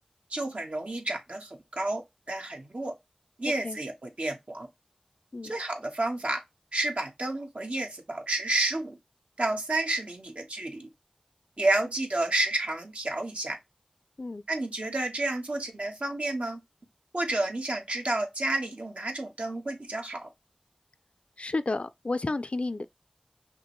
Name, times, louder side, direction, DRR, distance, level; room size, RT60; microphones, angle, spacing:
voice 1, 0.3-2.9 3.4-4.7 5.4-6.4 6.7-9.0 9.4-10.9 11.6-13.6 14.5-16.6 17.1-20.3, right 2 dB, 75° right, 1.1 m, -30 dB
voice 2, 21.4-22.9, left 2 dB, 65° left, 0.4 m, -31 dB
5.8 x 2.1 x 3.0 m
wide cardioid pair, 40°, 2 cm